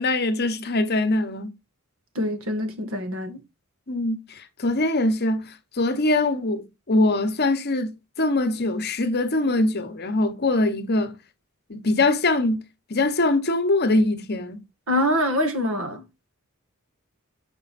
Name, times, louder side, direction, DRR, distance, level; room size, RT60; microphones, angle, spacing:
voice 1, 0.0-1.5 3.9-11.1 11.7-12.6 12.9-14.6, left 2 dB, 50° left, 1.1 m, -23 dB
voice 2, 2.2-3.4 14.9-16.0, equal, 70° right, 1.8 m, -25 dB
7.0 x 5.3 x 4.2 m
head